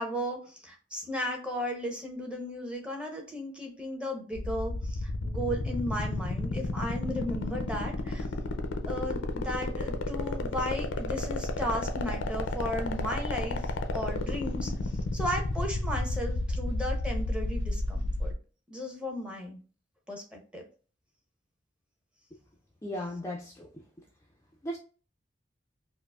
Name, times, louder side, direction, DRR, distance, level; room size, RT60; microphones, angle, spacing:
voice 1, 0.0-8.3 8.8-14.7 15.1-18.3 18.7-19.6 20.1-20.6, equal, 5° right, 0.8 m, -35 dB
sound 1, 4.3-18.3, left 2 dB, 90° left, 0.5 m, -31 dB
voice 2, 22.8-23.7 24.6-24.8, equal, 15° left, 0.4 m, -36 dB
4.6 x 2.1 x 2.3 m
head